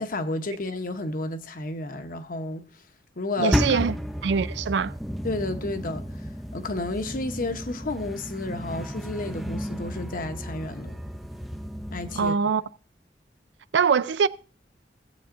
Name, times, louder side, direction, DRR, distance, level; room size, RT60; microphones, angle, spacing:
voice 1, 0.0-2.7 3.2-3.9 5.2-6.2 6.5-11.0 11.9-12.3, left 2 dB, 50° left, 0.9 m, -31 dB
voice 2, 3.4-4.0 4.2-4.9 12.2-12.6 13.7-14.3, right 6 dB, 75° right, 0.4 m, -23 dB
sound 1, 3.5-12.3, equal, ahead, 0.5 m, -32 dB
17.0 x 7.8 x 2.6 m
head